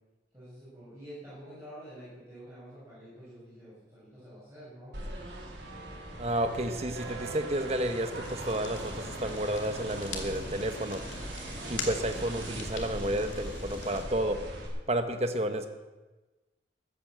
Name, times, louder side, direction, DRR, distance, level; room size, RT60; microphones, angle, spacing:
voice 1, 0.3-5.0, equal, 15° right, -11 dB, 6.4 m, -48 dB
sound 1, 4.9-14.7, right 1 dB, 70° right, 3.7 m, -40 dB
voice 2, 6.2-11.0 11.7-14.4 14.9-15.7, right 1 dB, 35° right, 7 dB, 1.2 m, -31 dB
Fire, 8.2-14.0, left 3 dB, 90° left, 2.7 m, -43 dB
14.5 x 10.0 x 7.8 m, 1.2 s
head